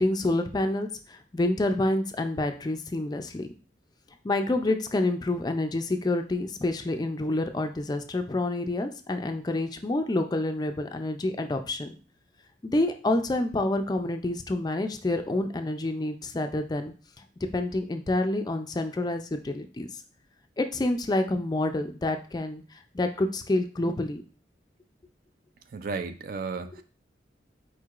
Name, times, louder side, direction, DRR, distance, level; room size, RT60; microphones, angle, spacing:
voice 1, 0.0-3.5 4.2-11.9 12.6-16.9 17.5-20.0 20.6-24.2, left 2 dB, 20° left, 6 dB, 0.4 m, -28 dB
voice 2, 25.7-26.8, right 4 dB, 50° right, 9 dB, 0.4 m, -33 dB
4.5 x 4.5 x 2.4 m, 0.37 s
head